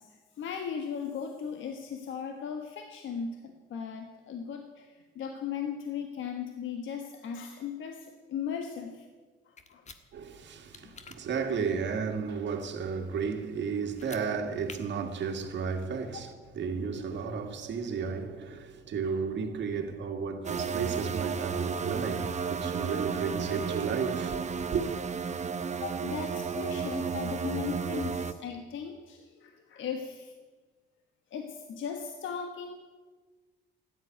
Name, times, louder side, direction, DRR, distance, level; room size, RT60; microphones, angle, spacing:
voice 1, 0.0-9.0 9.7-9.8 10.8-10.9 16.1-16.2 16.8-17.0 25.7-30.3 31.3-32.7, left 7 dB, 75° left, 1.4 m, -37 dB
sound 1, 9.6-10.0 10.7-11.2 13.9-14.2 14.6-14.8, left 5 dB, 35° left, 1.5 m, -47 dB
voice 2, 10.1-24.8, right 5 dB, 65° right, 2.1 m, -33 dB
sound 2, 20.4-28.3, right 5 dB, 35° right, 1.0 m, -33 dB
13.0 x 10.5 x 9.2 m
cardioid pair, 90°, 20 cm